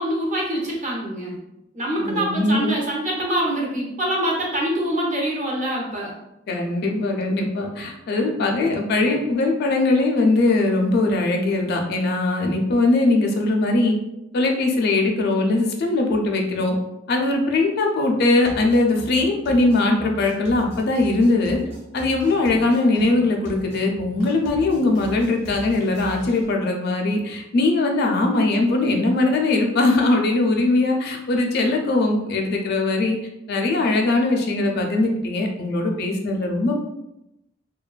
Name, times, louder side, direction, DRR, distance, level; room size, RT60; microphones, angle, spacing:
voice 1, 0.0-1.4 1.7-6.1, right 1 dB, 40° right, -3 dB, 0.7 m, -25 dB
voice 2, 2.0-2.7 6.5-14.0 14.3-16.7 17.1-21.6 21.9-33.2 33.5-36.8, left 2 dB, 55° left, 2 dB, 0.4 m, -20 dB
sound 1, 18.4-26.5, equal, 65° right, 1.0 m, -39 dB
2.8 x 2.2 x 2.3 m, 0.87 s
head